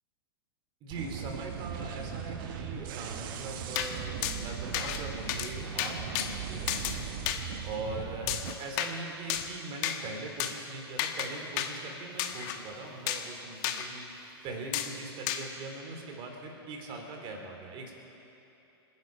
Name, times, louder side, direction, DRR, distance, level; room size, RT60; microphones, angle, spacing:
voice 1, 0.8-17.9, right 3 dB, 35° right, 2 dB, 3.2 m, -41 dB
sound 1, 0.9-8.5, right 7 dB, 50° right, 1.2 m, -39 dB
sound 2, 3.7-3.9 4.2-4.4 4.7-5.0 5.3-5.5 5.8-6.3 6.7-6.9 7.3-7.4 8.3-8.9 9.3-9.5 9.8-10.0 10.4-10.5 11.0-11.3 11.6-11.7 12.2-12.6 13.1-13.3 13.6-13.8 14.7-14.9 15.3-15.4, left 11 dB, 45° left, 1.3 m, -31 dB
27.0 x 10.5 x 4.7 m, 2.9 s
figure-of-eight pair, 100°, 14 cm